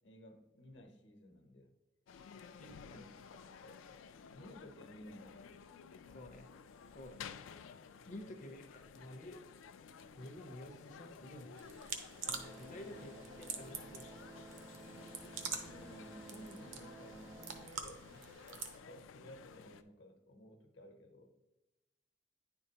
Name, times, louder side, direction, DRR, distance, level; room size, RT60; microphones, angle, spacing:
voice 1, 0.0-1.7 2.6-3.2 3.6-3.8 4.2-5.6 8.4-8.7 13.0-13.1 15.7-21.4, equal, 65° left, 5 dB, 0.9 m, -56 dB
sound 1, 2.1-19.8, left 6 dB, 90° left, 0.3 m, -54 dB
voice 2, 2.6-3.1 6.1-6.5 6.9-7.4 8.1-9.4 10.2-12.0 12.6-14.1, left 1 dB, 40° left, 4 dB, 0.5 m, -51 dB
sound 2, 11.6-18.8, right 6 dB, 85° right, 0.7 m, -47 dB
sound 3, 12.2-17.7, right 3 dB, 10° right, 0.4 m, -54 dB
9.8 x 4.4 x 2.8 m, 1.0 s
head